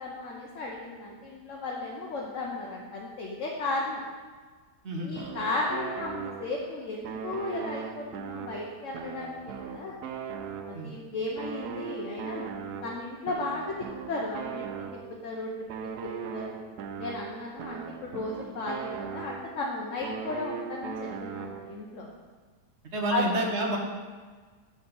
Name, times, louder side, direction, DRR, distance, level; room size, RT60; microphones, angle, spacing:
voice 1, 0.0-4.0 5.0-10.0 10.6-12.5 12.8-13.6 14.1-14.6 14.9-15.5 15.8-15.9 16.3-16.5 17.0-22.1 23.1-23.3, left 2 dB, 55° left, -2 dB, 1.1 m, -35 dB
sound 1, 5.2-6.7 7.0-11.0 11.4-15.3 15.7-19.6 20.0-21.9, right 7 dB, 75° right, 1.1 m, -39 dB
voice 2, 22.9-23.8, right 1 dB, 50° right, 1 dB, 1.1 m, -29 dB
7.1 x 4.9 x 5.5 m, 1.5 s
omnidirectional pair, 1.8 m